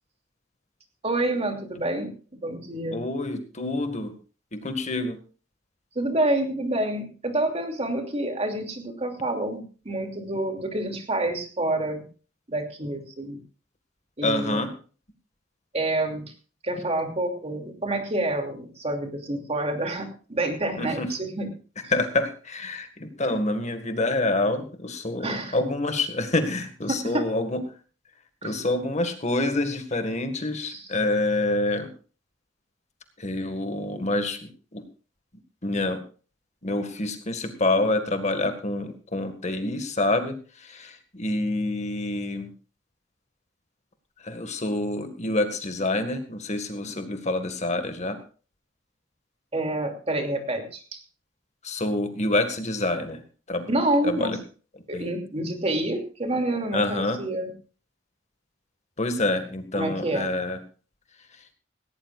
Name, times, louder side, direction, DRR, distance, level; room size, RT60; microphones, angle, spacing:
voice 1, 1.0-3.0 5.9-12.0 12.5-13.4 14.2-14.6 15.7-16.2 16.6-21.5 21.8-21.9 25.2-25.6 26.9-27.3 28.4-28.6 30.6-30.9 49.5-51.0 53.7-54.4 54.9-57.5 59.7-60.3, right 1 dB, 35° right, 4 dB, 2.8 m, -28 dB
voice 2, 2.9-4.1 4.5-5.2 14.2-14.7 20.8-21.1 21.9-27.6 28.4-31.9 33.2-34.8 35.6-36.0 36.6-42.5 44.2-48.2 51.6-53.2 53.5-53.7 54.0-54.4 54.9-55.1 56.7-57.2 59.0-60.6, left 2 dB, 40° left, 7 dB, 1.8 m, -27 dB
18.0 x 17.0 x 2.5 m, 0.37 s
head